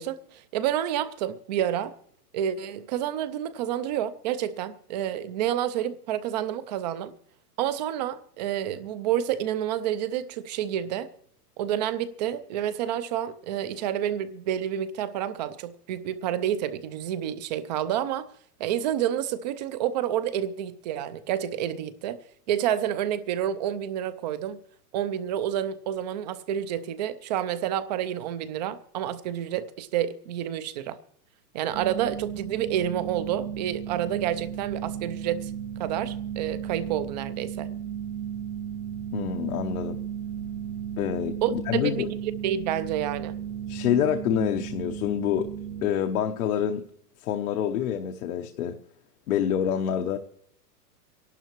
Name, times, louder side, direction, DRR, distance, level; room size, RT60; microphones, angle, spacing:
voice 1, 0.0-1.9 2.3-7.1 7.6-11.1 11.6-18.3 18.6-22.2 22.5-24.6 24.9-31.0 31.5-35.5 35.8-37.7 41.4-42.1 42.4-43.4, right 10 dB, 30° right, 0.5 m, -29 dB
sound 1, 31.7-45.9, right 9 dB, 60° right, 2.0 m, -35 dB
voice 2, 39.1-40.0 41.0-42.1 43.7-45.5 45.8-46.8 47.2-48.7 49.3-50.2, left 9 dB, 65° left, 1.0 m, -27 dB
25.0 x 12.0 x 3.0 m
supercardioid pair, 155°, 46 cm